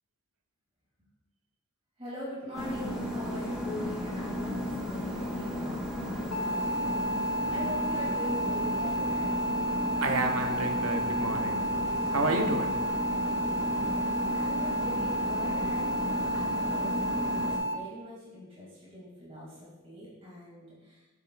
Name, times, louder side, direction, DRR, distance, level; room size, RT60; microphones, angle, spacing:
voice 1, 2.0-7.2 7.5-9.4 14.3-21.0, left 1 dB, 30° right, -7 dB, 2.1 m, -42 dB
sound 1, 2.5-17.6, equal, 5° right, 1.4 m, -34 dB
sound 2, 6.3-17.7, equal, 65° left, 0.6 m, -31 dB
voice 2, 10.0-11.7 12.1-12.8, right 2 dB, 75° right, 4 dB, 0.8 m, -30 dB
7.5 x 7.1 x 2.3 m, 1.1 s
head